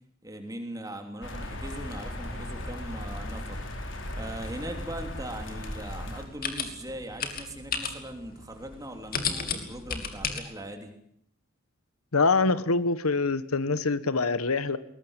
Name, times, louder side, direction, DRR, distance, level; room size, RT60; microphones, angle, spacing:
voice 1, 0.2-3.6 4.1-10.9, right 1 dB, 15° right, 5 dB, 3.3 m, -40 dB
sound 1, 1.2-6.2, left 1 dB, 60° left, 4.5 m, -37 dB
sound 2, 4.6-10.4, left 6 dB, 40° left, 2.9 m, -35 dB
voice 2, 12.1-14.8, left 3 dB, 85° left, 15 dB, 1.3 m, -25 dB
22.0 x 19.5 x 9.0 m, 0.72 s
head